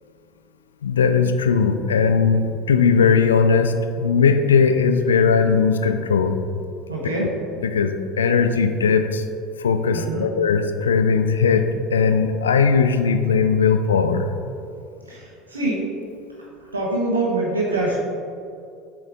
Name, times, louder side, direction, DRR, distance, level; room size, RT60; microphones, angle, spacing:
voice 1, 0.8-6.4 7.2-7.3 7.6-9.2 9.6-14.3, left 5 dB, 80° left, 8 dB, 0.4 m, -18 dB
voice 2, 6.9-7.3 9.9-10.3 15.1-15.9 16.7-18.0, right 2 dB, 85° right, -4 dB, 1.1 m, -24 dB
7.7 x 4.6 x 3.7 m, 2.5 s
figure-of-eight pair, 70°, 0 cm